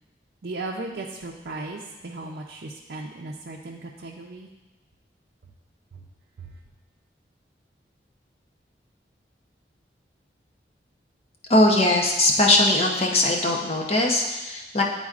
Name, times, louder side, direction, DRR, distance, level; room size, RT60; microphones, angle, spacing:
voice 1, 0.4-4.5 5.9-6.0 6.4-6.5, right 2 dB, 70° right, -2 dB, 0.5 m, -36 dB
voice 2, 11.5-14.8, left 1 dB, 35° left, 0 dB, 0.8 m, -20 dB
11.0 x 4.0 x 2.5 m, 1.1 s
head